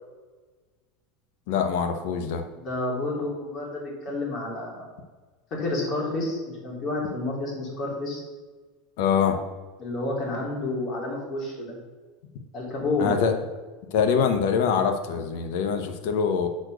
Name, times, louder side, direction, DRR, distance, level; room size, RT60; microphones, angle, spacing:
voice 1, 1.5-2.4 9.0-9.4 13.0-13.3 13.9-16.5, left 7 dB, 70° left, 6 dB, 1.0 m, -24 dB
voice 2, 2.5-4.9 5.5-8.2 9.8-11.8 12.5-13.2, left 2 dB, 35° left, -2 dB, 2.9 m, -30 dB
8.0 x 4.3 x 6.2 m, 1.3 s
supercardioid pair, 145°, 0 cm